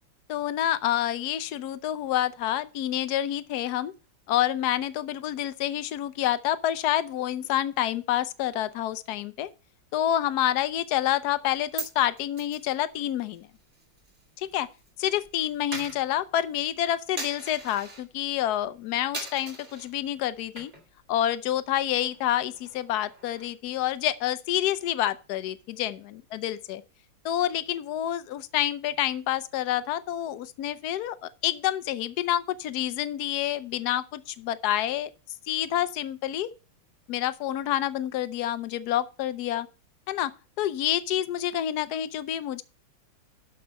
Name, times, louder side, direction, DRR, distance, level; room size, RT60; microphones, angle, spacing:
voice 1, 0.3-3.9 4.3-9.5 9.9-13.5 14.4-14.7 15.0-20.7 21.1-26.8 27.2-35.1 35.5-36.5 37.1-39.7 40.1-40.3 40.6-42.6, left 12 dB, 75° left, 0.9 m, -28 dB
Coin (dropping), 11.3-14.9 15.1-18.1 18.5-18.8 19.1-19.9 20.4-21.0 21.3-21.4 21.8-23.7, right 3 dB, 30° right, 2.4 m, -41 dB
12.5 x 5.5 x 5.3 m
omnidirectional pair, 2.4 m